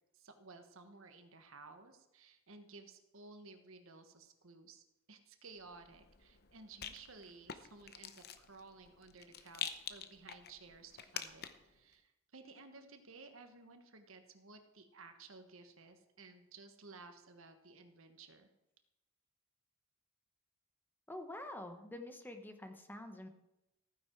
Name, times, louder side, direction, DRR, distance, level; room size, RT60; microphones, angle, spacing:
voice 1, 0.1-18.5, right 3 dB, 70° right, 7 dB, 1.3 m, -56 dB
Rattle, 5.7-11.8, left 8 dB, 50° left, 0.8 m, -47 dB
voice 2, 21.1-23.3, left 1 dB, 10° left, 6 dB, 1.0 m, -47 dB
15.0 x 9.6 x 4.6 m, 0.91 s
head